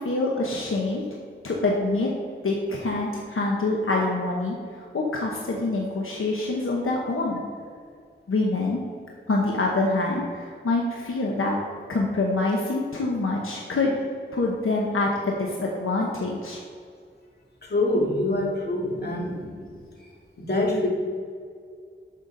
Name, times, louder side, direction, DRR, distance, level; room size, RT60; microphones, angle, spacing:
voice 1, 0.0-1.0 1.4-2.1 2.4-7.4 8.3-8.8 9.3-11.6 11.9-14.0 14.3-16.6, left 2 dB, 90° left, -1 dB, 1.0 m, -25 dB
voice 2, 17.6-19.7 20.4-20.9, left 2 dB, 50° left, -3 dB, 2.1 m, -25 dB
12.0 x 5.7 x 3.9 m, 2.2 s
wide cardioid pair, 70°, 21 cm